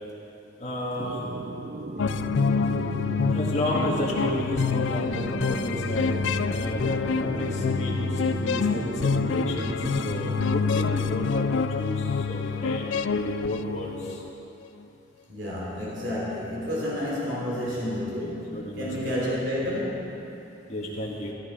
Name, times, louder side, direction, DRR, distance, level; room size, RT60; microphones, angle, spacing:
voice 1, 0.6-1.2 3.3-6.2 6.5-14.2 18.2-19.1 20.7-21.3, left 1 dB, 40° left, -4 dB, 1.8 m, -32 dB
sound 1, 1.0-10.9, right 2 dB, 40° right, 0.5 m, -35 dB
sound 2, 2.0-14.3, left 5 dB, 90° left, 0.4 m, -27 dB
voice 2, 15.3-20.3, left 1 dB, 70° right, -5 dB, 3.4 m, -30 dB
15.5 x 13.0 x 4.4 m, 2.9 s
head